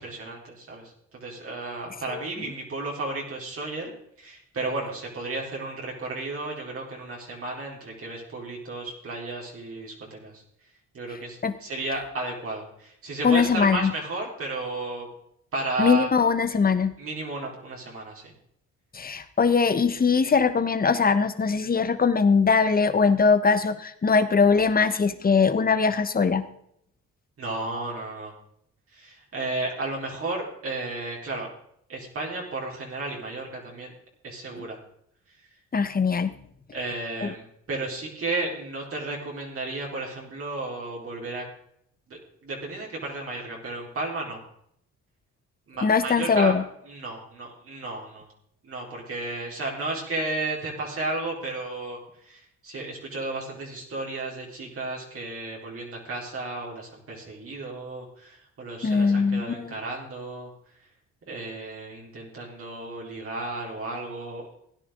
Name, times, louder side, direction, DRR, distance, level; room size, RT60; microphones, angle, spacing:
voice 1, 0.0-3.9 4.2-10.3 10.9-15.1 15.5-16.1 17.0-18.3 27.4-28.3 28.9-31.5 31.9-33.9 34.2-34.8 36.7-41.4 42.1-44.4 45.7-46.5 46.9-48.3 48.6-52.0 52.2-60.5 61.3-64.5, right 2 dB, 50° right, -2 dB, 4.2 m, -33 dB
voice 2, 13.2-13.9 15.8-16.9 18.9-26.5 35.7-36.3 37.2-37.3 45.8-46.6 58.8-59.7, left 5 dB, 30° left, 11 dB, 1.2 m, -21 dB
17.0 x 10.0 x 3.8 m, 0.70 s
cardioid pair, 90°, 30 cm